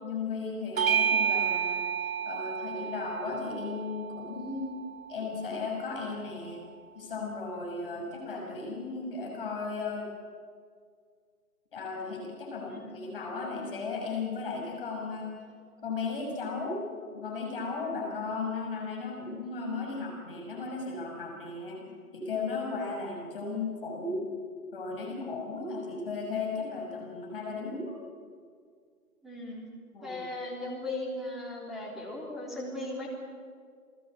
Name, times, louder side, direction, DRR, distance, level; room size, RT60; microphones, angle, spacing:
voice 1, 0.0-1.9 2.2-4.8 5.1-6.6 6.9-10.1 11.7-15.3 15.8-21.8 22.1-24.2 24.7-28.0 29.9-30.2, left 4 dB, 35° left, 0 dB, 6.4 m, -35 dB
Bell / Doorbell, 0.8-5.6, right 7 dB, 60° right, 1.1 m, -31 dB
voice 2, 12.7-13.0 19.9-20.0 21.7-21.9 24.9-25.2 29.2-29.7 30.0-33.1, left 2 dB, ahead, -4 dB, 3.5 m, -38 dB
29.0 x 19.5 x 8.6 m, 2.1 s
figure-of-eight pair, 145°, 45 cm